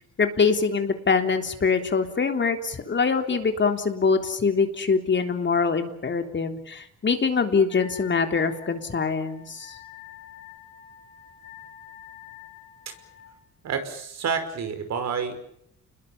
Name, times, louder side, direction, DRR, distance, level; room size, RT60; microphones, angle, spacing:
voice 1, 0.2-9.7, left 5 dB, 40° left, 6 dB, 3.6 m, -24 dB
Wind instrument woodwind instrument, 7.7-13.3, left 11 dB, 75° left, 7.0 m, -47 dB
voice 2, 13.6-15.4, right 6 dB, 60° right, 8 dB, 5.4 m, -29 dB
29.5 x 21.5 x 7.3 m, 0.72 s
cardioid pair, 90°, 30 cm